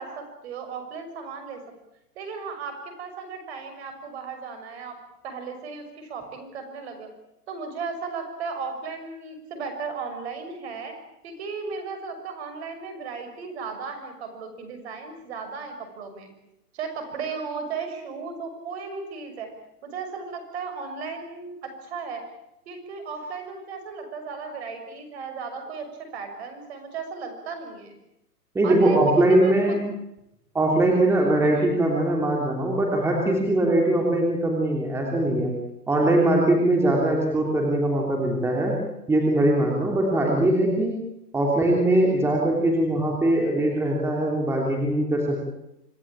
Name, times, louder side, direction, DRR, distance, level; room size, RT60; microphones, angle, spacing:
voice 1, 0.0-1.6 2.1-5.0 5.2-7.1 7.5-10.9 11.2-16.3 16.7-19.5 19.8-22.2 22.7-25.9 26.1-28.0 28.6-29.8 31.4-31.8, right 5 dB, 40° right, 7 dB, 6.4 m, -35 dB
voice 2, 28.5-29.8 30.5-35.5 35.9-38.7 39.1-41.0 41.3-45.4, right 1 dB, 5° right, 0 dB, 3.0 m, -21 dB
27.0 x 18.5 x 8.9 m, 0.89 s
hypercardioid pair, 145°, 47 cm